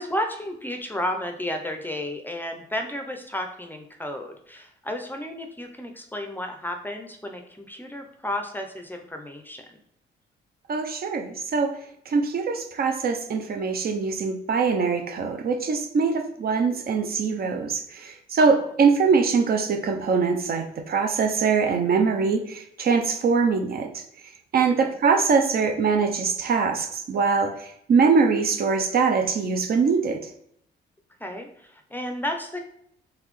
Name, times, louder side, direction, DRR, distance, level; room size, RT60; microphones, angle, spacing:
voice 1, 0.0-9.8 18.4-18.6 24.8-24.9 31.2-32.6, left 1 dB, 10° left, 4 dB, 0.5 m, -32 dB
voice 2, 10.7-11.8 12.1-24.0 24.5-30.2, right 5 dB, 50° right, 5 dB, 0.6 m, -23 dB
4.0 x 3.1 x 3.1 m, 0.71 s
cardioid pair, 90°, 20 cm